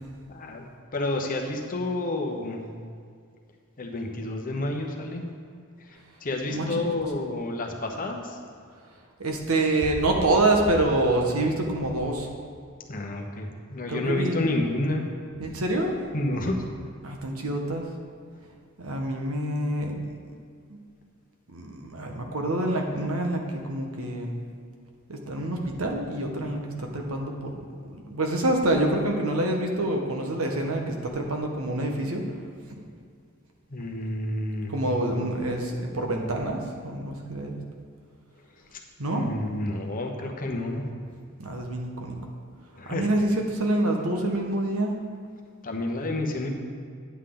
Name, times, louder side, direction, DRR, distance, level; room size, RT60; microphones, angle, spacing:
voice 1, 0.3-2.7 3.8-5.3 5.8-8.4 12.9-15.1 16.1-16.7 33.7-34.8 38.7-38.8 39.1-40.9 42.8-43.1 45.6-46.5, left 2 dB, 40° left, 2 dB, 1.0 m, -30 dB
voice 2, 9.2-12.3 13.9-14.4 15.4-16.0 17.0-17.9 18.8-20.1 20.7-20.8 21.5-24.3 25.1-27.5 27.9-32.2 32.8-32.9 34.7-37.6 39.0-39.2 41.4-42.2 42.8-44.9, right 1 dB, 90° right, 2 dB, 1.2 m, -26 dB
10.0 x 8.3 x 3.9 m, 2.2 s
head